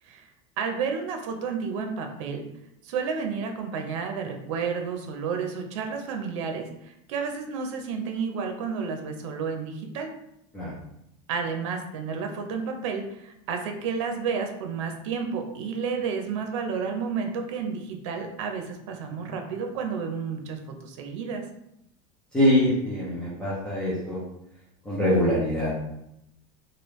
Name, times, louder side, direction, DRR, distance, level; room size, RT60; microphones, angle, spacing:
voice 1, 0.6-2.5 2.8-10.1 11.3-21.4, right 5 dB, 85° right, 4 dB, 0.6 m, -31 dB
voice 2, 22.3-24.2 24.9-25.7, left 1 dB, 5° left, -9 dB, 0.5 m, -23 dB
3.2 x 2.4 x 3.0 m, 0.81 s
cardioid pair, 175°, 16 cm